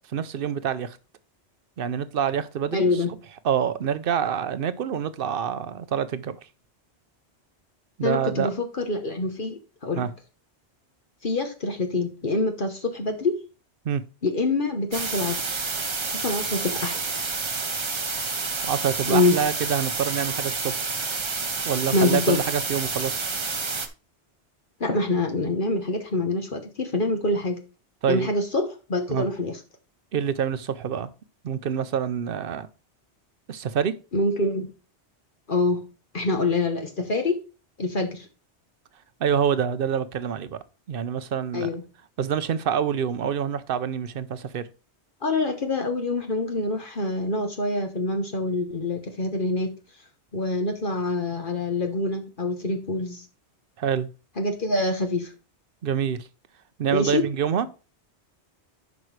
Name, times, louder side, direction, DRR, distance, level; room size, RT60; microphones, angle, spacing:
voice 1, 0.1-1.0 1.8-3.2 3.4-6.4 8.0-8.5 10.0-10.1 13.8-14.0 18.6-21.0 21.6-23.3 28.0-28.3 29.1-29.3 30.1-31.1 31.4-32.7 33.5-33.9 39.2-40.6 40.9-41.7 42.2-44.7 53.8-54.1 55.8-56.3 56.8-57.7, right 8 dB, 60° right, 0.8 m, -26 dB
voice 2, 2.7-3.1 8.0-10.1 11.2-13.4 14.2-15.6 16.1-17.0 19.1-19.3 21.9-22.4 24.8-27.6 28.1-29.6 34.1-34.7 35.5-35.8 36.1-37.4 37.8-38.3 41.5-41.8 45.2-49.7 50.3-53.2 54.4-55.3 56.9-57.2, left 2 dB, 50° left, 1.2 m, -25 dB
sound 1, 14.9-23.9, right 4 dB, 30° right, 0.7 m, -29 dB
11.0 x 5.3 x 3.2 m
omnidirectional pair, 1.1 m